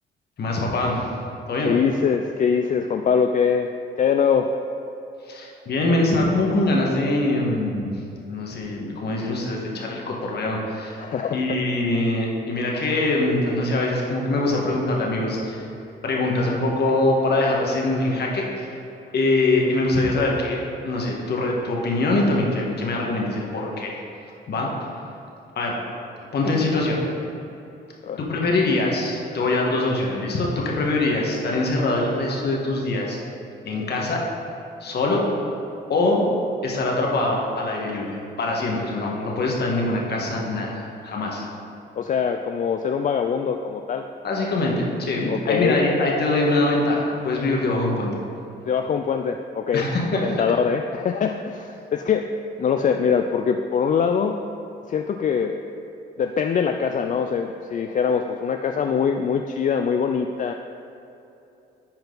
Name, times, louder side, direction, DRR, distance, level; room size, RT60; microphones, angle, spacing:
voice 1, 0.4-1.1 1.5-1.8 5.2-7.9 8.3-11.0 11.3-15.6 16.0-18.7 19.1-24.0 24.5-24.7 25.5-25.7 26.3-27.0 28.2-33.2 33.6-34.2 34.8-35.2 35.9-36.2 36.6-41.5 44.2-48.1 49.7-50.4, left 2 dB, 55° left, -2 dB, 1.6 m, -23 dB
voice 2, 1.7-3.7 4.0-4.5 11.0-11.4 28.0-28.2 42.0-44.0 45.3-45.8 48.6-49.8 50.2-52.2 52.6-54.4 54.9-55.6 56.2-60.5, left 6 dB, 40° left, 5 dB, 0.4 m, -23 dB
10.5 x 4.5 x 4.0 m, 2.8 s
cardioid pair, 90°, 20 cm